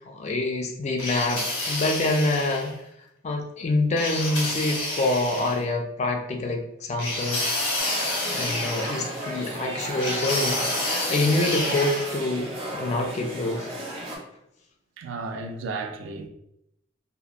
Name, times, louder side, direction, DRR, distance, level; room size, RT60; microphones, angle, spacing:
voice 1, 0.1-2.8 3.2-7.5 8.3-13.7, left 2 dB, 35° left, 0.3 m, -26 dB
sound 1, 1.0-2.7 4.0-5.6 7.0-9.3 10.0-12.1, left 2 dB, 85° left, 0.8 m, -29 dB
sound 2, 7.8-14.2, right 1 dB, 30° right, 0.6 m, -34 dB
voice 2, 15.0-16.3, right 3 dB, 75° right, 0.3 m, -33 dB
2.8 x 2.0 x 2.4 m
head